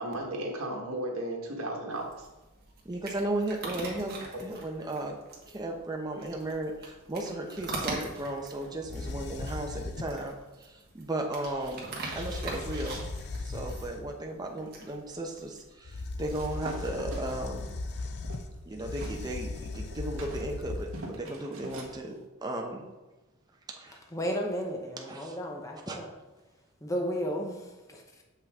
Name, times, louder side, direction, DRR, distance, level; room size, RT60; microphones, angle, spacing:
voice 1, 0.0-2.3, right 1 dB, 85° right, 0 dB, 1.4 m, -34 dB
sound 1, 1.9-15.7, right 2 dB, 50° right, 1.5 m, -43 dB
voice 2, 2.8-5.2 5.5-13.1 13.4-17.6 18.7-22.8 23.7-24.0 25.1-25.4 25.9-26.0, right 1 dB, 20° right, 1 dB, 0.7 m, -35 dB
sound 2, 8.8-10.3 11.8-11.9 12.1-14.1 15.8-21.2, left 3 dB, 50° left, 0.5 m, -38 dB
sound 3, 16.3-19.2 19.6-22.0, right 2 dB, 65° right, 1.2 m, -44 dB
voice 3, 24.1-26.1 26.8-28.2, equal, 15° left, 1 dB, 0.7 m, -34 dB
7.2 x 5.6 x 3.6 m, 1.1 s
head